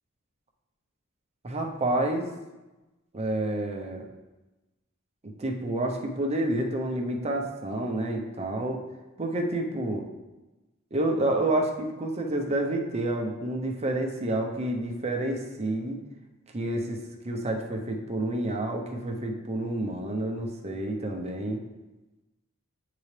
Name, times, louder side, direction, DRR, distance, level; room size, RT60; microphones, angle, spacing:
voice 1, 1.4-2.3 3.1-4.1 5.4-8.8 9.2-10.0 10.9-16.0 16.5-17.0 17.2-21.6, right 1 dB, 30° right, 1 dB, 0.8 m, -29 dB
8.4 x 3.8 x 3.3 m, 1.1 s
head